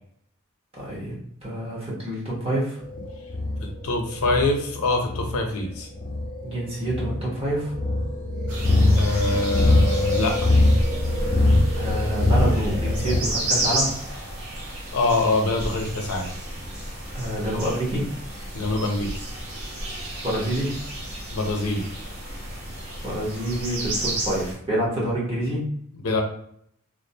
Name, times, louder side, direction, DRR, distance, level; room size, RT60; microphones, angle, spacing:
voice 1, 0.7-2.8 6.4-7.7 11.7-13.9 17.1-18.1 20.2-20.8 23.0-25.6, right 1 dB, 25° right, -6 dB, 0.8 m, -27 dB
sound 1, 2.8-13.2, left 2 dB, 40° left, 0.4 m, -22 dB
voice 2, 3.6-5.9 9.0-10.5 14.9-16.3 18.5-19.2 21.3-21.9 26.0-26.2, left 2 dB, 85° left, 3 dB, 0.6 m, -25 dB
sound 2, 8.5-24.5, right 1 dB, 70° right, 0.8 m, -32 dB
2.5 x 2.0 x 2.6 m, 0.68 s
head